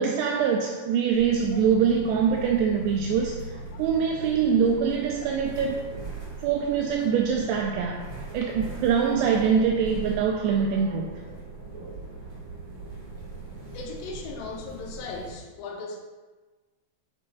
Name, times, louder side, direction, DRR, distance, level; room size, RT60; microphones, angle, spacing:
voice 1, 0.0-3.5 3.8-5.8 6.4-11.1, right 6 dB, 85° right, 1 dB, 2.4 m, -24 dB
sound 1, 1.1-15.3, right 3 dB, 45° right, 1.6 m, -40 dB
voice 2, 13.7-16.0, left 4 dB, 80° left, 0 dB, 2.0 m, -37 dB
9.3 x 5.5 x 2.3 m, 1.3 s
omnidirectional pair, 4.9 m